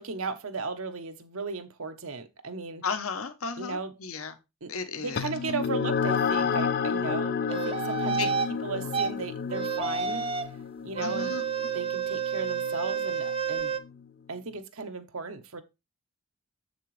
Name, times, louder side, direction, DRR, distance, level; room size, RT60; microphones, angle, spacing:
voice 1, 0.0-2.8 3.6-4.0 4.6-4.7 5.0-8.3 8.6-10.3 10.8-11.4 11.7-13.8 14.3-15.6, right 4 dB, 75° right, 1.1 m, -35 dB
voice 2, 2.8-4.3 4.7-5.3 8.2-8.3 8.7-8.9 11.0-11.4, left 5 dB, 75° left, 1.0 m, -34 dB
sound 1, 5.2-14.0, left 6 dB, 45° left, 0.3 m, -31 dB
sound 2, 7.5-8.5 8.9-9.1 9.5-10.5 10.9-13.8, right 6 dB, 25° right, 0.5 m, -30 dB
7.8 x 6.6 x 3.3 m
head